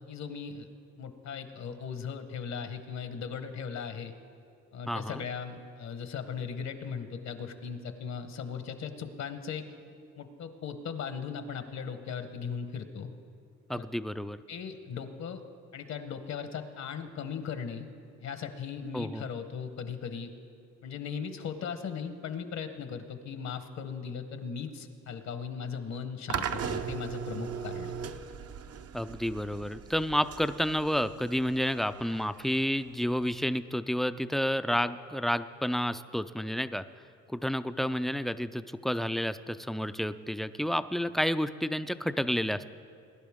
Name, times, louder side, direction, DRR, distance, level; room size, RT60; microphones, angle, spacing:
voice 1, 0.1-0.7 1.0-4.1 4.7-9.7 10.2-13.1 13.7-13.9 14.5-15.4 15.7-17.9 18.2-20.3 20.8-27.9, left 6 dB, 65° left, 9 dB, 1.0 m, -38 dB
voice 2, 4.9-5.2 13.7-14.4 18.9-19.3 28.9-36.8 37.3-42.7, equal, ahead, 12 dB, 0.3 m, -30 dB
sound 1, 26.3-33.4, right 7 dB, 55° right, 0.6 m, -38 dB
21.0 x 11.0 x 3.6 m, 2.3 s
cardioid pair, 90°, 30 cm